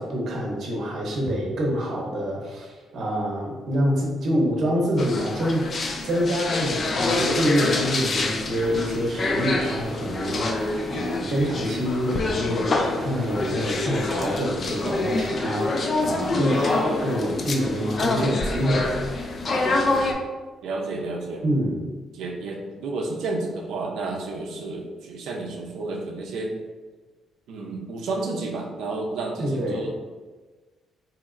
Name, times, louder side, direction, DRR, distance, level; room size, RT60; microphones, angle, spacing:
voice 1, 0.0-5.7 6.0-18.9 21.4-21.8 29.4-29.9, equal, 55° right, -1 dB, 0.8 m, -26 dB
sound 1, 5.0-20.1, left 2 dB, 35° left, 0.3 m, -26 dB
sound 2, 8.9-21.0, right 1 dB, 65° left, 1.1 m, -44 dB
voice 2, 20.6-21.4 22.1-26.6 27.5-29.9, right 3 dB, 85° right, 0 dB, 0.5 m, -31 dB
4.0 x 2.8 x 2.5 m, 1.3 s
cardioid pair, 165°, 0 cm